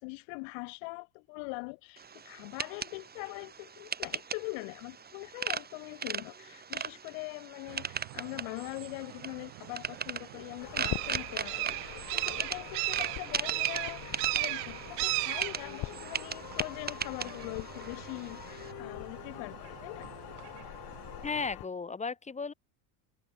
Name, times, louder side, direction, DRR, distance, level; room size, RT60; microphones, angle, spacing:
voice 1, 0.0-20.1, left 40 dB or more, 70° left, 7.5 m, -42 dB
sound 1, 2.0-18.7, right 6 dB, 20° right, 3.0 m, -39 dB
sound 2, 7.7-21.5, right 35 dB, 80° right, 0.8 m, -38 dB
sound 3, 10.6-21.7, left 17 dB, 50° left, 7.6 m, -44 dB
voice 2, 21.2-22.5, left 4 dB, 15° left, 1.8 m, -35 dB
cardioid pair, 140°, 46 cm